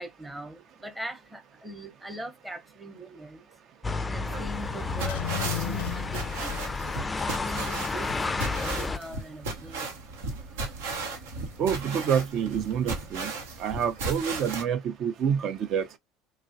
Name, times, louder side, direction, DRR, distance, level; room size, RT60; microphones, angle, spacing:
voice 1, 0.0-3.5 4.1-6.8 7.2-11.2 13.5-13.6, right 1 dB, 10° right, 0.8 m, -42 dB
sound 1, 3.8-9.0, left 3 dB, 20° left, 0.4 m, -31 dB
sound 2, 4.2-14.6, right 3 dB, 80° right, 0.8 m, -36 dB
sound 3, 4.8-7.6 7.9-8.0, left 10 dB, 90° left, 0.5 m, -34 dB
voice 2, 11.6-13.3 13.6-15.9, right 8 dB, 55° right, 0.6 m, -27 dB
3.1 x 2.3 x 2.5 m
hypercardioid pair, 80°, 0 cm